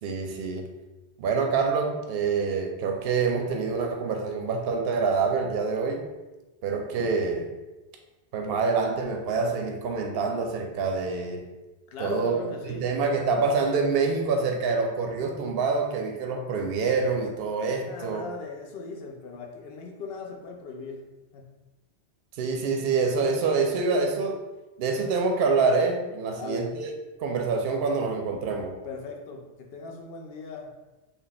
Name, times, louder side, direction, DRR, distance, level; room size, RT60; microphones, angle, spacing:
voice 1, 0.0-0.7 1.2-6.1 6.6-7.5 8.3-11.4 12.0-12.4 12.7-18.2 22.3-24.4 24.8-26.9 27.2-28.7, right 4 dB, 65° right, 4 dB, 0.7 m, -26 dB
voice 2, 11.9-13.0 17.8-21.1 21.3-21.5 26.3-26.7 28.8-30.7, left 4 dB, 65° left, 1 dB, 0.8 m, -39 dB
3.4 x 2.3 x 4.0 m, 1.1 s
omnidirectional pair, 1.1 m